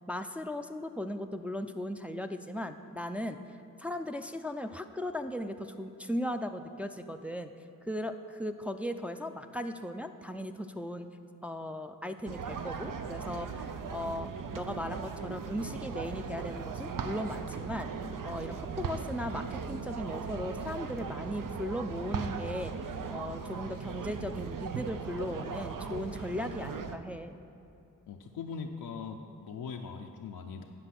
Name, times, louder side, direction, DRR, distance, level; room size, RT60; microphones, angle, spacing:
voice 1, 0.1-3.4 3.8-7.5 7.8-11.1 11.4-14.3 14.5-17.9 18.2-22.7 23.1-27.4, left 1 dB, 5° right, 6 dB, 0.5 m, -37 dB
sound 1, 12.3-27.0, right 5 dB, 65° right, 0.6 m, -38 dB
voice 2, 28.1-30.6, left 5 dB, 85° left, 2 dB, 0.6 m, -40 dB
9.9 x 5.2 x 5.9 m, 2.7 s
cardioid pair, 40°, 35 cm